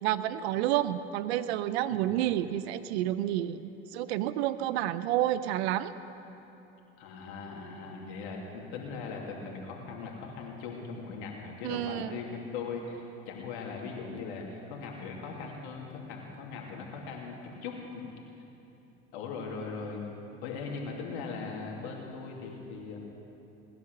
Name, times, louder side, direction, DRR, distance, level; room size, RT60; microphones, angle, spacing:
voice 1, 0.0-3.6 3.9-5.9 11.6-12.2, right 13 dB, 85° right, 14 dB, 0.6 m, -29 dB
voice 2, 7.0-18.0 19.1-20.0 20.4-23.0, left 4 dB, 80° left, -1 dB, 2.8 m, -39 dB
19.0 x 11.0 x 6.6 m, 3.0 s
hypercardioid pair, 75°, 32 cm